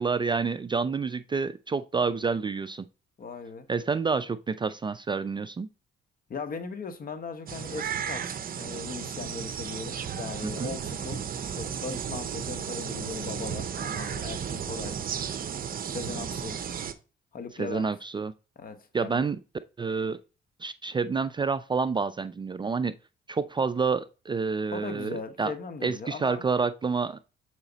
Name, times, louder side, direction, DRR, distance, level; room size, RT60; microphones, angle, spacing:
voice 1, 0.0-2.9 3.7-5.7 10.4-10.7 17.6-18.3 18.9-19.4 19.8-20.2 20.6-22.9 23.3-25.5 25.8-27.2, right 5 dB, 25° right, 0.3 m, -28 dB
voice 2, 3.2-3.7 6.3-11.3 11.6-15.0 15.9-16.6 17.3-17.9 18.6-19.3 24.7-26.4, left 4 dB, 45° left, 1.2 m, -38 dB
sound 1, 7.5-16.9, right 8 dB, 45° right, 0.7 m, -34 dB
7.0 x 4.9 x 4.0 m
cardioid pair, 90°, 20 cm